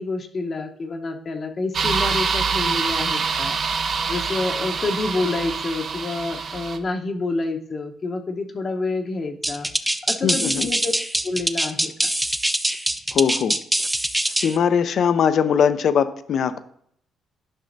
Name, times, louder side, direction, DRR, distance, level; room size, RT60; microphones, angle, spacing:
voice 1, 0.0-3.6 4.1-9.7 10.1-10.9 11.2-11.9, left 3 dB, 40° left, 4 dB, 0.8 m, -28 dB
sound 1, 1.7-6.8, right 5 dB, 55° right, 0.7 m, -25 dB
sound 2, 9.4-14.6, right 1 dB, 5° right, 0.5 m, -23 dB
voice 2, 10.2-10.7 13.1-13.6 14.4-16.6, left 7 dB, 65° left, 12 dB, 0.5 m, -20 dB
11.5 x 5.4 x 2.6 m, 0.66 s
cardioid pair, 90°, 0 cm